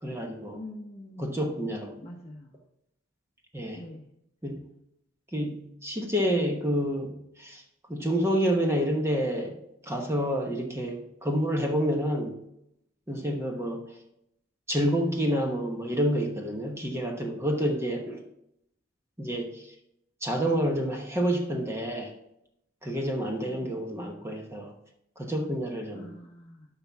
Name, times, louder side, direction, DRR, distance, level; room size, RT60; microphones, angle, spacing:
voice 1, 0.0-0.6 1.2-1.9 3.5-3.8 4.4-4.6 5.3-7.6 7.9-9.6 9.8-12.4 13.1-13.8 14.7-18.2 19.2-19.7 20.2-22.1 22.8-24.7 25.2-26.1, equal, 15° right, 2 dB, 1.0 m, -28 dB
voice 2, 0.5-1.3 2.0-2.6 3.7-4.0 23.4-23.8 25.9-26.7, left 1 dB, 30° left, 0 dB, 0.9 m, -44 dB
11.5 x 5.8 x 3.5 m, 0.78 s
head